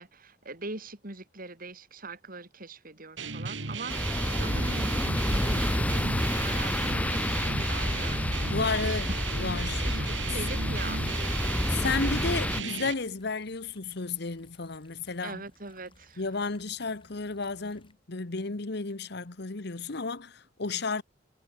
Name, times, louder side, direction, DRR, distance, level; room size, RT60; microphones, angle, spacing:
voice 1, 0.0-8.4 8.8-9.2 9.8-11.4 15.2-16.2, right 2 dB, 50° right, 4.6 m, -42 dB
sound 1, 3.2-12.9, right 5 dB, 85° right, 1.9 m, -36 dB
sound 2, 3.7-17.9, left 2 dB, 30° left, 4.8 m, -62 dB
sound 3, 3.9-12.6, left 1 dB, 10° left, 0.6 m, -29 dB
voice 2, 8.5-9.1 9.4-9.8 11.7-15.4 16.2-21.0, left 4 dB, 60° left, 1.2 m, -32 dB
head